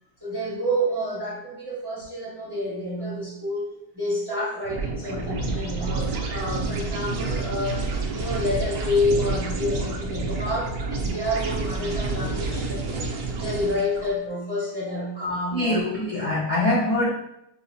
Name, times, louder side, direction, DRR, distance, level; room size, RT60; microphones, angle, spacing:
voice 1, 0.2-13.1 13.4-15.8, left 1 dB, 20° right, -8 dB, 0.7 m, -29 dB
sound 1, 4.6-14.1, right 3 dB, 65° right, 0.8 m, -29 dB
voice 2, 15.5-17.1, left 1 dB, 55° left, -9 dB, 0.4 m, -24 dB
5.0 x 2.1 x 2.6 m, 0.80 s
omnidirectional pair, 1.8 m